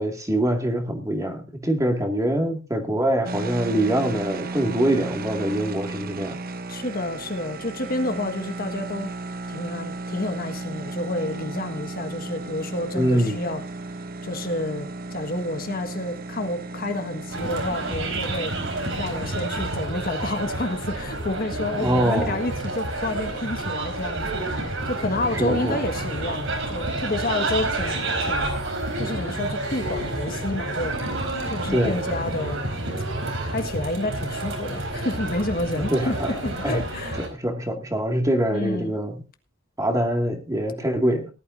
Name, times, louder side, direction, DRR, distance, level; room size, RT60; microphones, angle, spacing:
voice 1, 0.0-6.4 12.9-13.4 21.8-22.4 25.3-25.8 31.7-32.0 35.8-36.3 36.6-36.8 37.3-39.2 39.8-41.3, right 1 dB, 15° right, 3 dB, 2.1 m, -24 dB
sound 1, 3.2-19.9, right 2 dB, 45° right, 1.0 m, -35 dB
voice 2, 6.7-9.1 9.5-13.6 14.2-18.6 19.0-28.5 29.0-31.0 31.4-32.7 33.5-37.2 38.5-38.9, left 2 dB, 45° left, 7 dB, 1.5 m, -29 dB
sound 2, 17.3-37.3, right 2 dB, 60° right, 4.4 m, -29 dB
18.5 x 12.5 x 2.6 m, 0.31 s
head